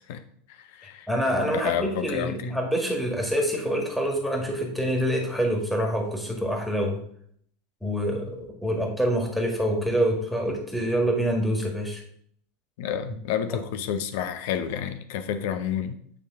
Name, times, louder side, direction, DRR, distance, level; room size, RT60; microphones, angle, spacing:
voice 1, 0.5-1.1 1.6-2.5 12.8-16.0, left 9 dB, 60° left, 10 dB, 0.6 m, -30 dB
voice 2, 1.1-7.0 7.8-12.0 13.5-13.6, equal, ahead, 1 dB, 1.8 m, -26 dB
9.0 x 3.3 x 3.8 m, 0.64 s
figure-of-eight pair, 85°, 0 cm